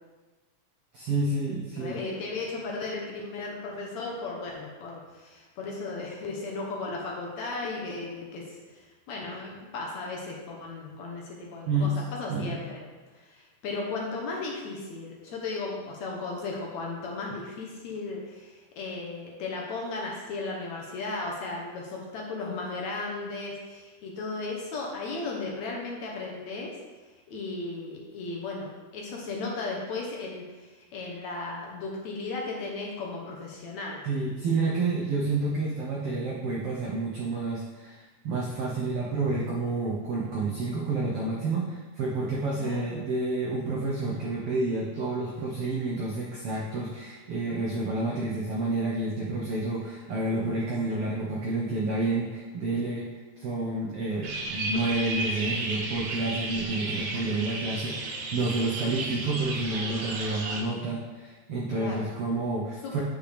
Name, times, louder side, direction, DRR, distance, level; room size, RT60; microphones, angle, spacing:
voice 1, 0.9-2.0 11.7-12.0 12.3-12.6 34.0-53.1 53.4-63.0, right 2 dB, 90° right, -4 dB, 1.2 m, -29 dB
voice 2, 1.8-12.8 13.3-26.7 27.3-34.0 34.5-34.7 42.6-42.9 50.9-51.0 61.7-62.1 62.8-63.0, left 3 dB, 65° left, -1 dB, 2.0 m, -35 dB
sound 1, 54.2-60.6, right 2 dB, 70° right, 2.5 m, -33 dB
8.6 x 6.6 x 3.4 m, 1.3 s
omnidirectional pair, 4.0 m